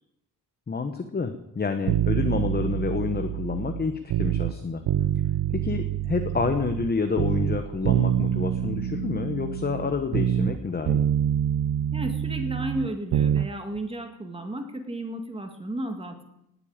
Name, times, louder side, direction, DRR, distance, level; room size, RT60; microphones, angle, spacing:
voice 1, 0.7-4.8 5.5-11.0, left 4 dB, 25° left, 7 dB, 1.0 m, -28 dB
sound 1, 1.9-4.5 4.9-6.9 7.2-10.6 10.9-13.5 13.8-13.9, right 10 dB, 90° right, 0.7 m, -26 dB
voice 2, 11.9-16.2, right 1 dB, 15° right, 5 dB, 1.9 m, -33 dB
19.0 x 8.3 x 8.8 m, 0.83 s
wide cardioid pair, 175°, 37 cm